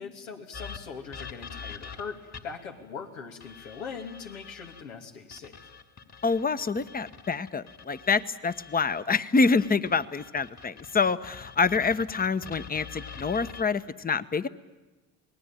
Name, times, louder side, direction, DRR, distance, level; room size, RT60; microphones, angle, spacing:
voice 1, 0.0-5.6, left 5 dB, 85° left, 2 dB, 2.8 m, -41 dB
sound 1, 0.5-2.7 3.4-4.8 5.3-9.0 9.4-13.6, left 5 dB, 40° left, 2.9 m, -45 dB
voice 2, 6.2-14.5, left 4 dB, 20° left, 14 dB, 1.1 m, -26 dB
27.5 x 19.5 x 9.0 m, 1.2 s
hypercardioid pair, 65°, 40 cm